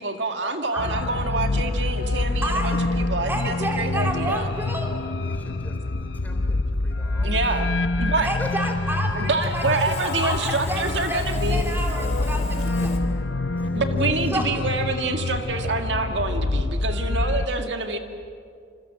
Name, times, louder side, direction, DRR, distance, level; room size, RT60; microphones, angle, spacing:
voice 1, 0.0-4.5 7.2-7.7 8.0-8.3 9.1-11.6 13.7-18.0, right 3 dB, 85° right, 5 dB, 2.0 m, -27 dB
sound 1, 0.8-17.5, left 2 dB, 75° left, 0.8 m, -26 dB
voice 2, 2.4-2.8 3.3-4.9 8.2-13.0 14.3-14.7, right 1 dB, 15° right, 1 dB, 3.7 m, -30 dB
voice 3, 5.1-7.8 8.2-8.7 9.1-9.3 13.5-13.8, equal, 10° left, 4 dB, 3.8 m, -41 dB
Sawing, 9.4-13.0, left 4 dB, 40° left, 3.2 m, -40 dB
27.5 x 27.0 x 7.7 m, 2.3 s
head